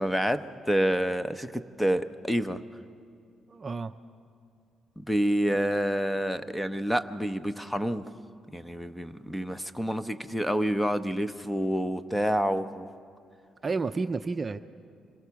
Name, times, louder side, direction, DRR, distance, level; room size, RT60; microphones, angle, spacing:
voice 1, 0.0-2.6 5.0-8.0 8.5-12.9, equal, 5° left, 12 dB, 0.8 m, -28 dB
voice 2, 3.5-3.9 13.6-14.6, right 4 dB, 30° right, 10 dB, 0.5 m, -31 dB
26.0 x 17.5 x 7.0 m, 2.4 s
cardioid pair, 90°, 0 cm